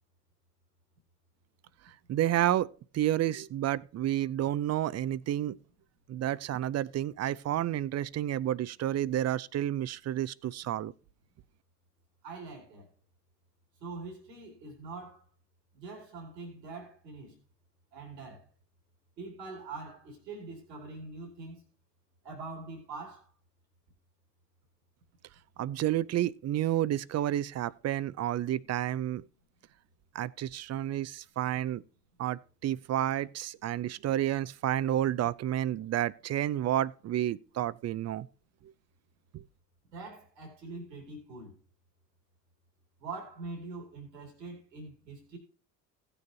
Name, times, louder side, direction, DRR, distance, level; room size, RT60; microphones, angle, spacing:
voice 1, 2.1-5.6 6.1-10.9 25.6-29.2 30.1-31.8 32.2-38.3 39.3-39.4, right 12 dB, 35° right, 0.5 m, -30 dB
voice 2, 12.2-12.9 13.8-15.2 15.7-17.3 17.9-18.5 19.2-21.6 22.2-23.3 39.9-41.6 43.0-45.4, right 3 dB, 85° right, 2.8 m, -43 dB
16.5 x 6.9 x 2.8 m
hypercardioid pair, 60°, 48 cm